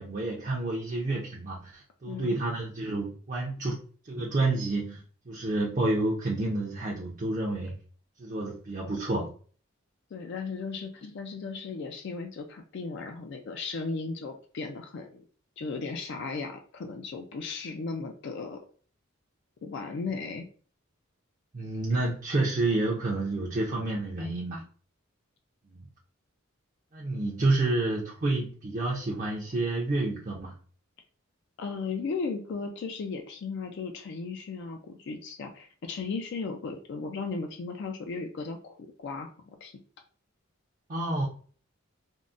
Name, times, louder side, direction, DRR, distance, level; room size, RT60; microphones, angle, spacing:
voice 1, 0.0-3.8 4.0-7.8 8.2-9.3 21.5-24.6 25.7-25.8 26.9-30.5 40.9-41.3, right 2 dB, 40° right, -2 dB, 0.5 m, -29 dB
voice 2, 2.0-2.4 10.1-15.2 15.6-18.6 19.6-20.5 31.6-39.3 39.6-39.7, left 4 dB, 55° left, 4 dB, 0.3 m, -36 dB
3.6 x 2.0 x 2.4 m, 0.42 s
head